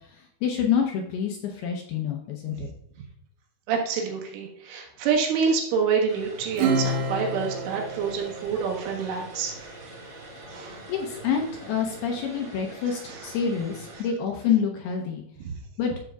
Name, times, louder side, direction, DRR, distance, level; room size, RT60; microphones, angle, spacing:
voice 1, 0.4-2.7 10.9-15.2 15.8-15.9, left 7 dB, 80° left, 1 dB, 2.4 m, -27 dB
voice 2, 3.7-9.8 10.5-10.8 12.9-13.4 15.4-15.5, right 6 dB, 85° right, 0 dB, 4.0 m, -27 dB
Vehicle, 6.1-14.0, right 1 dB, 35° right, 2.1 m, -44 dB
Acoustic guitar / Strum, 6.5-9.5, right 3 dB, 70° right, 2.5 m, -29 dB
12.5 x 7.4 x 2.3 m, 0.78 s
omnidirectional pair, 5.5 m